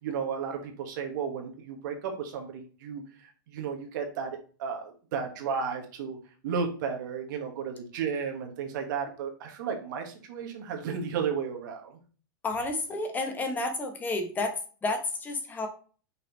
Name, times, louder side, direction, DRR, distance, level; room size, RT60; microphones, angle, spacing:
voice 1, 0.0-6.2 6.4-12.0, right 6 dB, 60° right, 3 dB, 1.6 m, -33 dB
voice 2, 12.4-14.5 14.8-15.7, left 2 dB, 15° left, 4 dB, 1.3 m, -30 dB
5.7 x 4.1 x 4.1 m, 0.39 s
hypercardioid pair, 135°, 12 cm